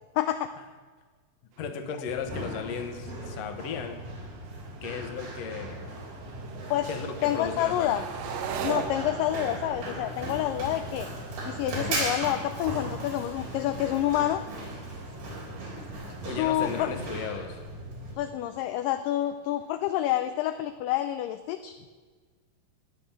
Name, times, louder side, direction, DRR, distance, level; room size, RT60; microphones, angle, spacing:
voice 1, 0.2-0.5 6.7-6.9 7.2-8.0 8.6-11.1 11.5-14.4 16.4-16.9 18.2-21.8, left 13 dB, 80° left, 9 dB, 2.1 m, -28 dB
sound 1, 1.5-20.3, right 7 dB, 70° right, 1.7 m, -43 dB
voice 2, 1.6-4.0 4.8-6.1 6.9-8.1 16.2-17.6, left 6 dB, 60° left, 6 dB, 2.0 m, -36 dB
Run, 2.1-18.1, right 1 dB, 90° right, 5.5 m, -37 dB
14.5 x 9.8 x 7.3 m, 1.5 s
omnidirectional pair, 4.2 m